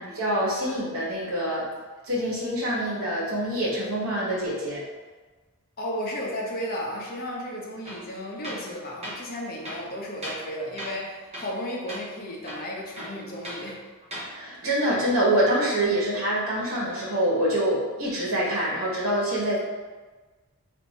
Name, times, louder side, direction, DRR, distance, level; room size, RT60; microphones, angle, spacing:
voice 1, 0.0-1.7 2.0-4.8 14.3-19.6, right 1 dB, 70° right, -5 dB, 1.3 m, -25 dB
voice 2, 5.8-13.8, equal, 40° left, -2 dB, 0.7 m, -34 dB
Tools, 7.8-8.1 8.4-8.7 9.0-9.2 9.6-10.5 10.8-11.0 11.3-11.6 11.9-12.0 12.4-13.6 14.0-14.3, equal, 30° right, 0.7 m, -37 dB
3.5 x 2.6 x 4.1 m, 1.3 s
head